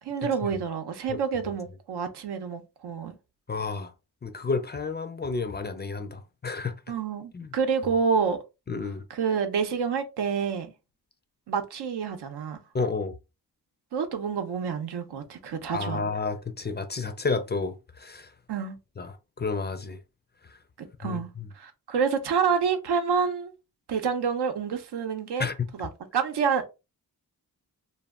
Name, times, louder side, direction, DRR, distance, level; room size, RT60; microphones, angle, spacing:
voice 1, 0.0-3.2 6.9-8.4 9.1-10.7 11.5-12.6 13.9-16.1 18.5-18.8 20.8-21.3 21.5-23.5 23.9-26.7, right 6 dB, 80° right, 0.6 m, -28 dB
voice 2, 3.5-3.9 4.2-6.8 7.3-7.5 8.7-9.0 12.7-13.1 15.7-18.3 19.0-20.0 20.5-20.6 21.0-21.5 25.4-25.7, left 4 dB, 25° left, 0.4 m, -31 dB
2.1 x 2.0 x 3.5 m
cardioid pair, 55°, 40 cm